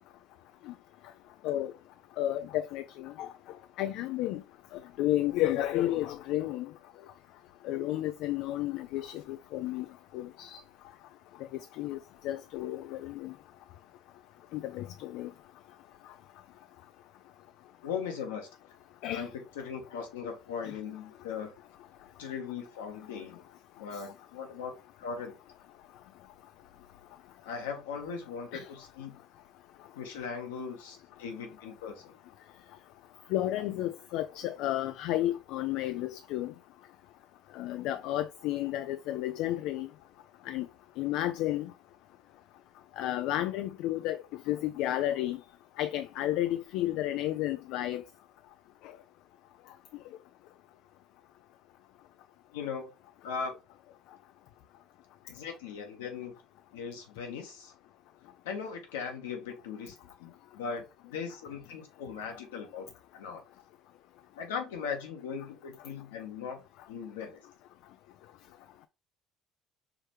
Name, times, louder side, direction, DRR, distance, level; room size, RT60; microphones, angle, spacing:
voice 1, 2.2-3.3 3.8-4.4 5.0-6.7 7.6-9.9 10.1-10.6 11.8-12.0 12.2-13.3 14.5-15.3 19.0-19.3 28.5-28.6 33.3-36.5 37.6-39.9 40.5-40.7 41.0-41.7 43.0-44.2 44.5-45.4 45.8-48.0, left 14 dB, 70° left, 0.3 m, -32 dB
voice 2, 17.8-18.5 19.1-21.5 22.2-23.4 23.8-25.3 27.4-29.2 30.0-32.1 52.5-52.9 53.2-53.5 55.2-56.3 56.7-57.7 58.4-62.9 63.1-63.4 64.4-66.6 66.9-67.4, left 6 dB, 85° left, 1.1 m, -39 dB
4.9 x 3.1 x 3.0 m
hypercardioid pair, 70°, 0 cm